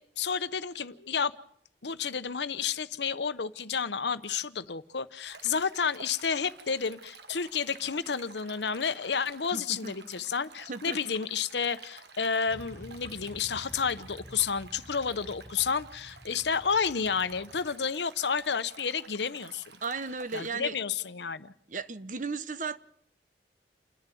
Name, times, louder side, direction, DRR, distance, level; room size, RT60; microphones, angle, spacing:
voice 1, 0.0-1.3 1.8-19.6 20.3-21.5, left 6 dB, 80° left, 0.9 m, -31 dB
Stream, 5.3-20.5, right 4 dB, 75° right, 1.6 m, -51 dB
voice 2, 9.5-9.9 10.7-11.0 19.8-20.7 21.7-22.8, right 4 dB, 45° right, 1.0 m, -35 dB
Motorcycle / Traffic noise roadway noise, 12.5-17.7, equal, 20° left, 3.2 m, -50 dB
29.0 x 11.0 x 9.2 m
head